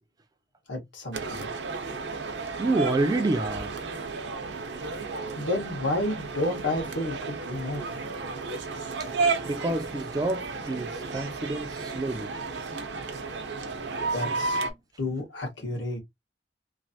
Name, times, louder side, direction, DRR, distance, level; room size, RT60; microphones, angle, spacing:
voice 1, 0.7-1.5 5.4-7.9 14.1-14.6 15.0-16.0, left 1 dB, 80° left, 1.3 m, -31 dB
sound 1, 1.1-14.7, right 4 dB, 70° right, 0.7 m, -33 dB
voice 2, 2.6-3.7 9.5-12.3, right 2 dB, 20° right, 0.3 m, -28 dB
3.1 x 2.5 x 2.6 m
head